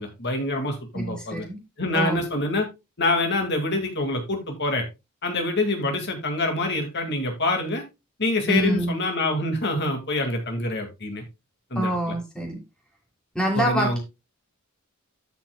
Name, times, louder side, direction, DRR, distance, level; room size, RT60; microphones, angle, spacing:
voice 1, 0.0-1.5 1.8-2.7 3.0-4.9 5.2-7.8 8.2-11.2 11.7-11.9 13.6-14.0, left 2 dB, 50° left, 4 dB, 2.1 m, -25 dB
voice 2, 0.9-1.6 1.9-2.2 8.5-8.9 11.7-12.6 13.3-14.0, right 1 dB, 5° left, 0 dB, 2.7 m, -26 dB
14.5 x 5.9 x 2.2 m, 0.25 s
head